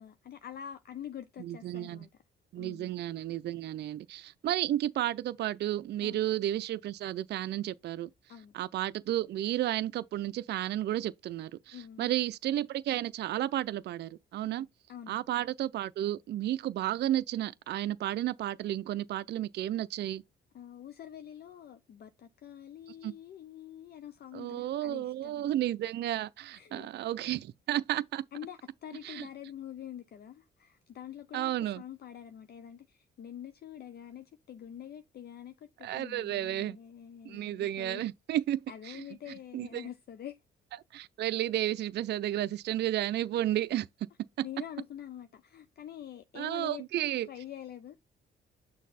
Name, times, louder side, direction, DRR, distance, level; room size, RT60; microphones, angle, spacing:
voice 1, 0.0-2.2 2.5-2.9 6.0-6.2 8.3-8.5 11.7-12.1 14.4-15.3 20.5-25.4 26.5-26.9 27.7-27.8 28.3-38.1 38.7-40.4 44.4-46.8 47.2-48.0, left 10 dB, 55° left, 0.6 m, -46 dB
voice 2, 1.4-2.0 2.5-8.1 8.5-14.7 15.1-20.2 23.0-23.1 24.3-28.2 29.0-29.3 31.3-31.8 35.8-36.8 37.3-38.6 38.9-39.0 39.5-39.9 40.9-43.9 46.4-47.3, right 13 dB, 60° right, 0.4 m, -32 dB
6.4 x 4.0 x 4.1 m
cardioid pair, 90°, 20 cm